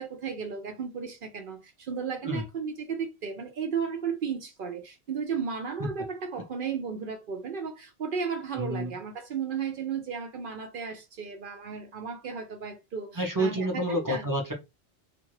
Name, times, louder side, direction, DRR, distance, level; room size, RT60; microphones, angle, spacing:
voice 1, 0.0-14.3, right 6 dB, 60° right, 0.7 m, -34 dB
voice 2, 8.5-8.9 13.2-14.5, right 1 dB, 25° right, 0.6 m, -29 dB
2.5 x 2.3 x 3.1 m
omnidirectional pair, 1.1 m